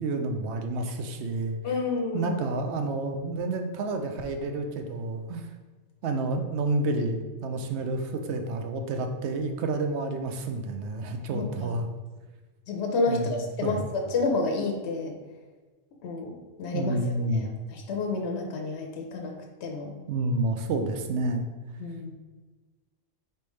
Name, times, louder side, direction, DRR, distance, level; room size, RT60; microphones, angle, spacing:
voice 1, 0.0-1.6 2.1-5.5 6.0-11.9 13.1-13.3 13.6-13.9 16.7-17.5 20.1-21.5, right 2 dB, 65° right, 5 dB, 0.8 m, -29 dB
voice 2, 1.6-2.4 11.3-11.8 12.7-15.1 16.0-17.0 17.3-19.3 19.6-19.9 21.8-22.2, left 3 dB, 65° left, 2 dB, 0.8 m, -30 dB
4.3 x 3.3 x 3.2 m, 1.3 s
omnidirectional pair, 1.4 m